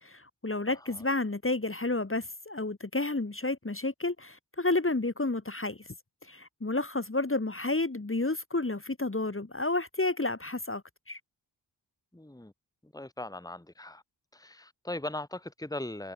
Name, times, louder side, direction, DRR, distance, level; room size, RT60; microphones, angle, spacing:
voice 1, 0.0-5.8 6.3-11.2, left 2 dB, 30° left, 1.9 m, -31 dB
voice 2, 0.7-1.1 12.1-12.5 12.8-14.0 14.3-16.1, left 1 dB, 10° left, 1.8 m, -39 dB
cardioid pair, 40°, 45 cm